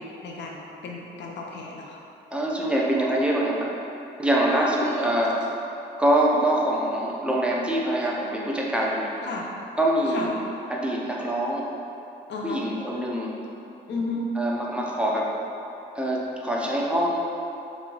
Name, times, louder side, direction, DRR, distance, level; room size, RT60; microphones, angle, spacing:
voice 1, 0.0-2.0 4.7-5.1 6.3-6.4 9.2-9.5 10.1-10.3 12.3-12.6 13.9-14.3, left 3 dB, 65° left, -1 dB, 0.7 m, -33 dB
voice 2, 2.3-3.7 4.2-5.4 6.0-9.1 9.8-10.3 10.7-11.7 12.4-13.3 14.4-15.3 15.9-17.2, right 1 dB, 5° right, -3 dB, 0.6 m, -24 dB
3.4 x 3.1 x 3.8 m, 2.8 s
cardioid pair, 90°, 20 cm